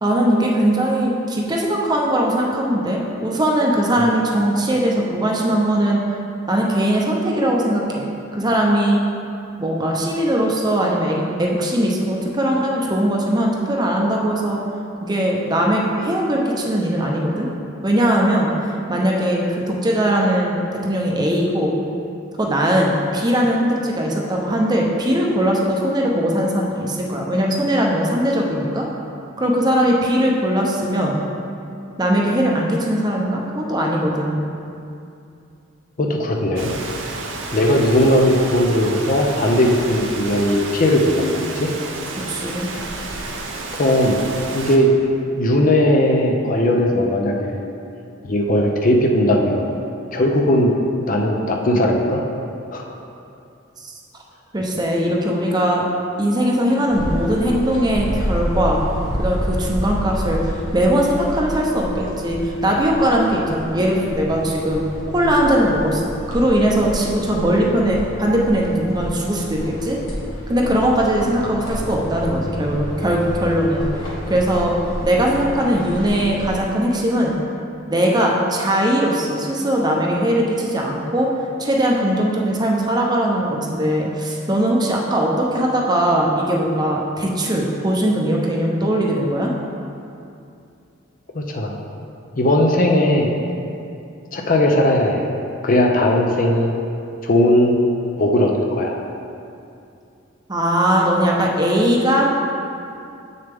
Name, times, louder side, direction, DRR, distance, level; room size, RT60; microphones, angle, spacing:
voice 1, 0.0-6.0 6.5-9.0 9.6-14.6 15.0-17.5 17.8-18.5 18.9-21.7 22.4-28.9 29.4-31.2 32.0-34.4 42.3-42.7 53.8-53.9 54.5-55.9 56.2-58.8 59.2-64.8 65.1-66.0 66.3-70.0 70.5-73.9 74.3-74.8 75.0-77.3 77.9-81.3 81.6-89.5 100.5-102.3, equal, 20° right, -2 dB, 0.7 m, -20 dB
voice 2, 36.0-36.7 37.5-41.7 43.7-44.2 44.5-44.9 45.4-47.7 48.2-49.7 50.1-50.7 51.1-52.2 52.7-52.8 91.3-91.8 92.4-93.3 94.3-95.3 95.6-96.7 97.2-97.8 98.2-99.0, left 1 dB, 40° left, 1 dB, 0.6 m, -18 dB
Rain, 36.6-44.8, right 3 dB, 65° right, 0.7 m, -31 dB
sound 1, 56.9-76.6, equal, 85° left, 1.4 m, -29 dB
7.1 x 6.5 x 3.5 m, 2.6 s
head